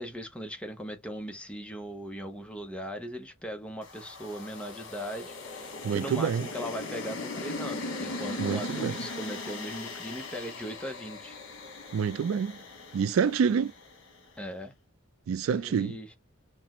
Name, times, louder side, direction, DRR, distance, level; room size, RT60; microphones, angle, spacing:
voice 1, 0.0-11.4 14.4-14.7 15.6-16.1, equal, 5° left, 0.6 m, -39 dB
sound 1, 3.8-14.2, left 2 dB, 65° left, 1.2 m, -39 dB
voice 2, 5.8-6.5 8.4-9.0 11.9-12.5 12.9-13.7 15.3-16.0, right 6 dB, 75° right, 0.3 m, -27 dB
5.8 x 2.1 x 3.0 m
head